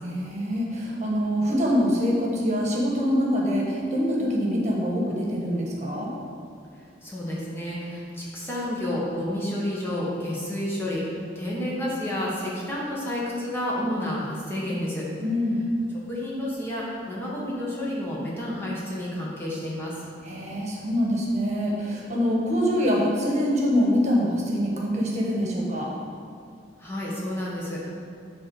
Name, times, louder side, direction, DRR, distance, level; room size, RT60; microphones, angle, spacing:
voice 1, 0.0-6.1 15.2-15.6 20.2-25.9, equal, 40° right, -3 dB, 1.4 m, -24 dB
voice 2, 7.0-11.0 11.3-15.0 16.1-19.9 26.8-27.9, left 1 dB, 15° left, -6 dB, 1.5 m, -30 dB
7.4 x 4.0 x 6.4 m, 2.3 s
head